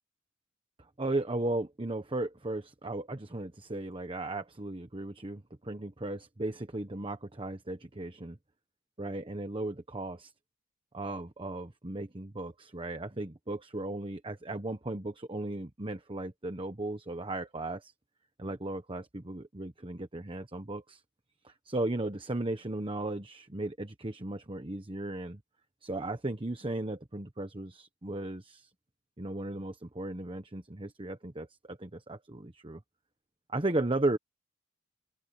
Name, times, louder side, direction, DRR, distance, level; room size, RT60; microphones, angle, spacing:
voice 1, 1.0-8.4 9.0-10.3 10.9-17.9 18.4-21.0 21.4-25.4 25.8-28.7 29.2-32.8 33.5-34.2, right 2 dB, 25° right, 1.1 m, -36 dB
open air
head